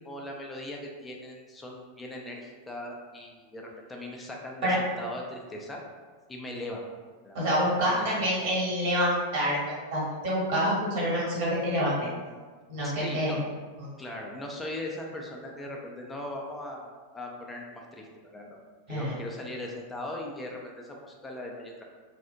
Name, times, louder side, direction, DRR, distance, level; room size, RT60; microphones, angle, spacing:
voice 1, 0.0-5.8 6.3-6.8 7.2-8.5 12.8-13.4 14.0-18.6 18.9-21.8, left 1 dB, 10° left, -1 dB, 0.3 m, -39 dB
voice 2, 7.3-9.6 9.9-12.1 12.7-13.4 13.8-13.9 18.9-19.2, equal, 50° right, -6 dB, 1.1 m, -27 dB
2.7 x 2.0 x 2.2 m, 1.5 s
figure-of-eight pair, 90°, 0 cm